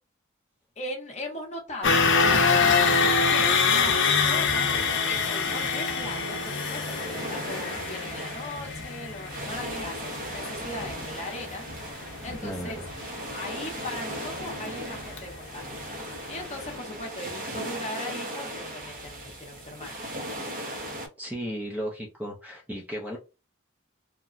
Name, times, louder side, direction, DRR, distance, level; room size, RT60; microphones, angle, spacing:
voice 1, 0.8-4.7 5.0-11.6 12.2-12.8 13.3-19.9, left 1 dB, 30° left, 0.8 m, -39 dB
sound 1, 1.8-15.9 16.2-16.4 16.8-16.9, left 5 dB, 60° left, 0.6 m, -26 dB
sound 2, 4.5-21.1, right 1 dB, 40° right, 0.8 m, -38 dB
voice 2, 12.4-12.8 21.2-23.2, equal, 10° right, 0.5 m, -35 dB
2.9 x 2.2 x 2.4 m
head